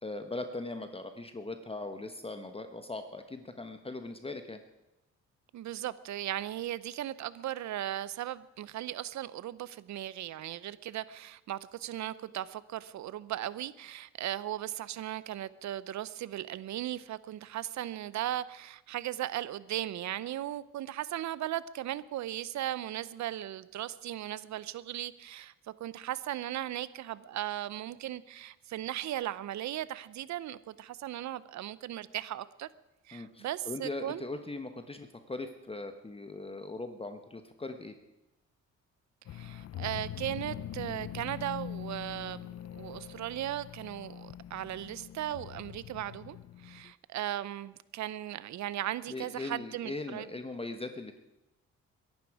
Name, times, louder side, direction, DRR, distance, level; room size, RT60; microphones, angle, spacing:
voice 1, 0.0-4.6 33.1-38.0 49.1-51.2, left 2 dB, 20° left, 7 dB, 1.2 m, -40 dB
voice 2, 5.5-25.5 25.8-32.7 33.0-34.3 39.3-42.5 42.7-50.3, right 12 dB, 70° right, 17 dB, 0.8 m, -37 dB
sound 1, 39.2-46.9, left 11 dB, 55° left, 0.6 m, -43 dB
22.0 x 11.5 x 4.8 m, 0.95 s
cardioid pair, 90°, 30 cm